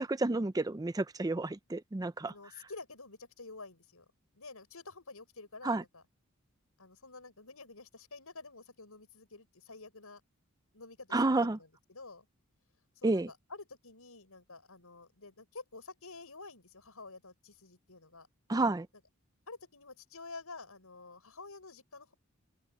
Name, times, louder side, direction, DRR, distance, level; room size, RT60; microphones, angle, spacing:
voice 1, 0.0-2.3 5.6-5.8 11.1-11.6 13.0-13.3 18.5-18.9, right 2 dB, 15° right, 0.4 m, -30 dB
voice 2, 2.3-4.1 4.3-6.0 6.8-10.2 10.7-12.3 13.0-18.3 19.5-22.1, left 3 dB, 80° left, 5.4 m, -50 dB
open air
head